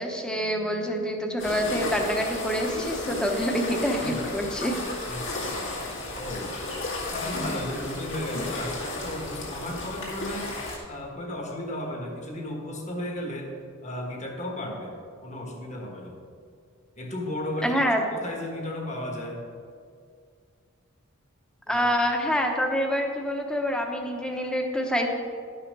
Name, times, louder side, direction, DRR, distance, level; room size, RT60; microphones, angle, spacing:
voice 1, 0.0-4.7 17.6-18.0 21.7-25.1, equal, 5° left, 2 dB, 1.0 m, -26 dB
sound 1, 1.4-10.8, left 2 dB, 65° left, 2.3 m, -33 dB
voice 2, 4.7-5.6 6.1-6.5 7.1-10.5 10.8-13.5 13.8-15.0 15.2-16.1 17.0-17.8 18.1-19.4 21.7-21.9, left 1 dB, 35° left, 1 dB, 1.6 m, -34 dB
11.5 x 5.8 x 5.4 m, 2.2 s
head